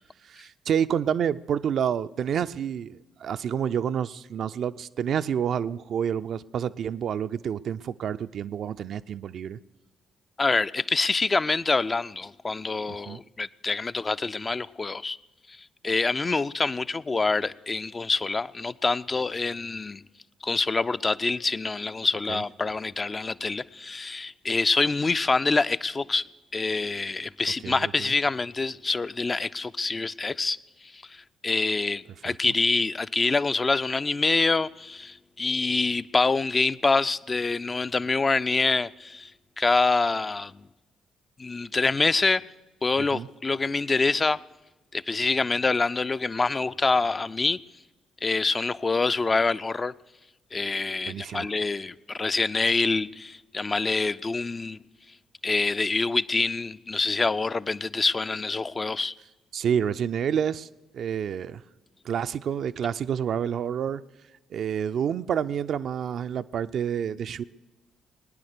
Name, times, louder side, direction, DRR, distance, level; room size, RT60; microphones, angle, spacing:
voice 1, 0.2-9.6 12.9-13.2 22.3-22.4 27.6-28.1 32.3-32.5 43.1-43.3 51.1-51.5 59.5-60.7 60.9-61.6 62.0-64.0 64.5-67.4, right 8 dB, 55° right, 0.4 m, -29 dB
voice 2, 10.4-15.2 15.8-20.0 20.4-26.2 26.5-30.6 30.9-39.3 39.6-40.5 41.4-42.4 42.8-44.4 44.9-47.6 48.2-49.9 50.5-54.8 55.4-59.1, left 3 dB, 30° left, 0.4 m, -26 dB
21.5 x 9.8 x 6.7 m
figure-of-eight pair, 45°, 0 cm